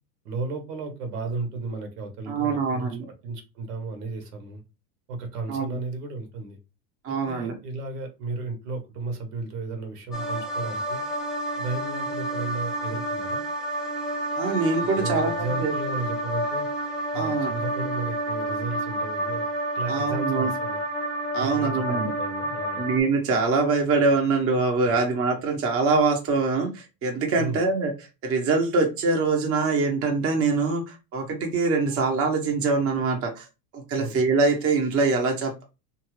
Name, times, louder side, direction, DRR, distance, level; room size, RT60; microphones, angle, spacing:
voice 1, 0.2-3.0 3.2-4.6 5.1-6.6 7.1-11.0 11.6-13.4 14.9-16.7 17.1-19.4 19.7-20.8 21.4-22.8 27.3-27.6 34.0-34.2, right 3 dB, 80° right, 4 dB, 1.2 m, -34 dB
voice 2, 2.3-3.0 5.5-5.8 7.0-7.5 14.4-15.8 17.1-17.6 19.9-20.5 21.3-22.1 22.8-27.9 28.2-33.5 33.7-35.6, right 4 dB, 30° right, 2 dB, 0.9 m, -24 dB
sound 1, 10.1-23.0, right 1 dB, ahead, 0.4 m, -29 dB
2.7 x 2.4 x 3.1 m, 0.28 s
supercardioid pair, 110°, 47 cm